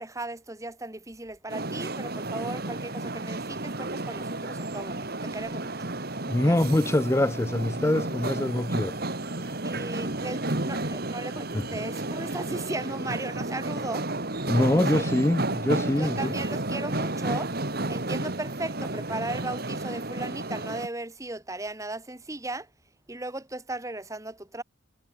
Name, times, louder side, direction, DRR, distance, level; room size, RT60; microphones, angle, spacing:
voice 1, 0.0-5.7 6.4-6.6 9.6-14.0 14.6-15.1 16.0-17.5 17.9-22.7 23.1-24.6, right 2 dB, 15° right, 1.6 m, -36 dB
sound 1, 1.5-20.9, right 2 dB, 50° right, 2.3 m, -32 dB
voice 2, 6.3-9.0 9.4-9.6 11.5-11.7 14.5-16.3, left 1 dB, 15° left, 0.4 m, -24 dB
head